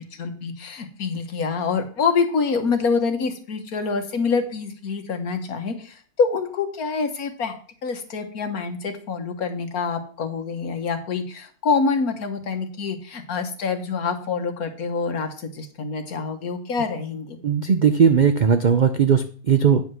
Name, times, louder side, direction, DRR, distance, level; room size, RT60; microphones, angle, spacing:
voice 1, 0.0-7.5 7.8-17.4, left 5 dB, 65° left, 6 dB, 1.7 m, -26 dB
voice 2, 17.4-19.8, right 7 dB, 80° right, 8 dB, 0.4 m, -18 dB
9.5 x 5.3 x 6.2 m, 0.44 s
omnidirectional pair, 1.7 m